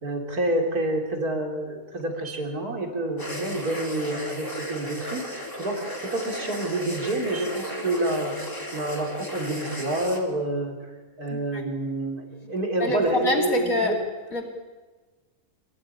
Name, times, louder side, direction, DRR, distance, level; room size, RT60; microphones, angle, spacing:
voice 1, 0.0-5.2 5.6-8.3 8.7-10.8 11.2-13.9, right 1 dB, 75° right, 2 dB, 4.1 m, -28 dB
sound 1, 3.2-10.2, equal, 15° left, 3.5 m, -35 dB
voice 2, 11.3-11.6 12.8-13.9 14.3-14.4, left 2 dB, 65° left, 3 dB, 3.4 m, -26 dB
27.5 x 15.5 x 10.0 m, 1.3 s
omnidirectional pair, 1.6 m